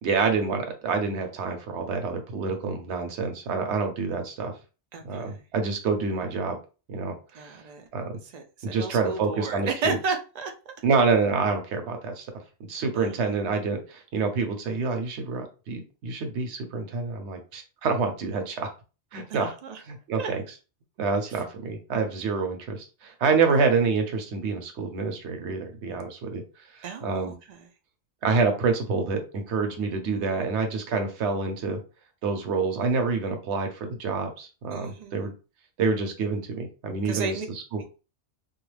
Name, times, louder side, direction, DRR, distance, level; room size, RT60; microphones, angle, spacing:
voice 1, 0.0-4.5 5.0-6.6 6.9-7.6 7.9-8.2 8.6-10.0 10.8-12.3 12.7-18.7 19.1-19.5 19.8-20.4 21.0-26.4 26.7-27.3 28.2-31.8 32.2-35.3 35.8-37.4 37.7-37.8, right 4 dB, 75° right, 0.9 m, -27 dB
voice 2, 4.9-5.4 7.3-7.8 8.3-10.5 12.9-13.4 19.3-19.8 20.1-20.3 26.8-27.6 34.7-35.2 37.0-37.5, right 4 dB, 60° right, 0.4 m, -33 dB
2.3 x 2.3 x 3.1 m
omnidirectional pair, 1.2 m